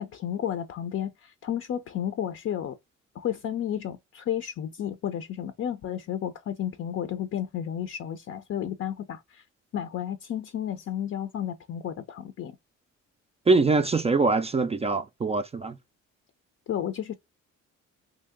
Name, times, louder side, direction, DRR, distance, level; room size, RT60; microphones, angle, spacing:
voice 1, 0.0-2.8 3.1-9.4 9.7-12.5 16.7-17.1, left 10 dB, 50° left, 0.6 m, -32 dB
voice 2, 13.5-15.8, right 3 dB, 20° right, 0.3 m, -23 dB
3.0 x 2.8 x 3.4 m
cardioid pair, 90°, 30 cm